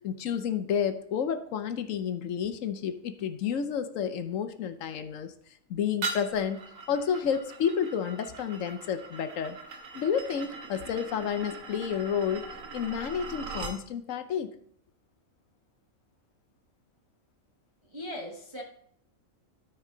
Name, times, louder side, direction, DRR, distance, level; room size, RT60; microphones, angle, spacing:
voice 1, 0.0-5.3 5.7-6.6 6.9-9.6 9.9-12.5 12.7-14.5, left 7 dB, 75° left, 10 dB, 1.1 m, -30 dB
sound 1, 6.0-13.8, right 3 dB, 85° right, 1.5 m, -40 dB
voice 2, 17.8-18.6, left 1 dB, 25° right, 0 dB, 0.9 m, -39 dB
13.0 x 4.7 x 3.7 m, 0.64 s
omnidirectional pair, 1.4 m